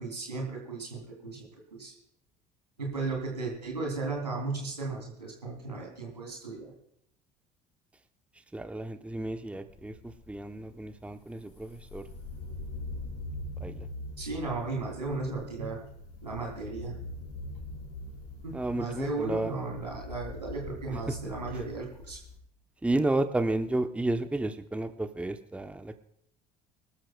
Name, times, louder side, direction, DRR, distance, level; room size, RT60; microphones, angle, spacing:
voice 1, 0.0-1.9 2.8-6.7 14.2-15.8 16.2-16.9 18.4-22.2, right 3 dB, 85° right, 0 dB, 3.2 m, -35 dB
voice 2, 8.5-9.9 10.3-12.0 13.6-13.9 18.5-19.5 22.8-25.9, right 2 dB, 5° right, 9 dB, 0.8 m, -31 dB
sound 1, 9.7-22.4, left 2 dB, 75° left, 5.4 m, -43 dB
25.5 x 12.5 x 2.3 m, 0.71 s
figure-of-eight pair, 55°, 21 cm